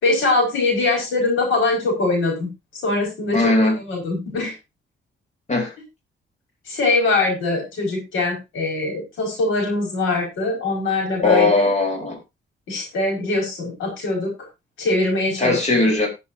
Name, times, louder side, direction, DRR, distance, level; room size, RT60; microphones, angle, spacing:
voice 1, 0.0-2.5 2.8-4.5 6.7-11.7 12.7-14.3 14.8-15.6, left 2 dB, 80° left, 5.0 m, -22 dB
voice 2, 3.3-3.8 5.5-5.7 11.2-12.2 15.4-16.1, left 2 dB, 35° left, 3.9 m, -18 dB
18.5 x 7.1 x 2.7 m
cardioid pair, 80°, 20 cm